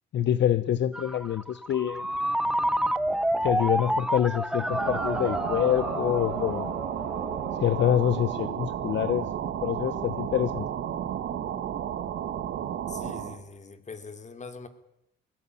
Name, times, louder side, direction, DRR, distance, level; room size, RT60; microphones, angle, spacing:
voice 1, 0.1-2.1 3.4-6.7 7.6-9.3 9.6-10.7, left 10 dB, 65° left, 15 dB, 1.0 m, -26 dB
Ringtone, 0.9-8.4, right 1 dB, 5° right, 1.0 m, -30 dB
sound 1, 4.6-13.4, right 10 dB, 75° right, 2.4 m, -33 dB
voice 2, 12.8-14.7, left 4 dB, 35° left, 10 dB, 3.4 m, -42 dB
21.5 x 17.0 x 9.9 m, 0.82 s
cardioid pair, 90°, 20 cm